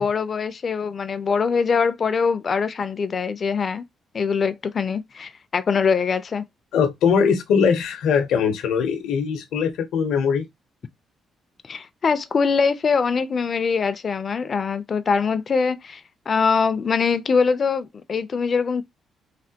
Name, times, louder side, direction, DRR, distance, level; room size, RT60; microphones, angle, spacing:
voice 1, 0.0-3.8 4.1-6.4 11.7-16.0 16.3-18.8, left 5 dB, 45° left, 0.4 m, -23 dB
voice 2, 6.7-10.4, left 6 dB, 80° left, 0.7 m, -21 dB
3.3 x 2.1 x 2.7 m
cardioid pair, 90°, 0 cm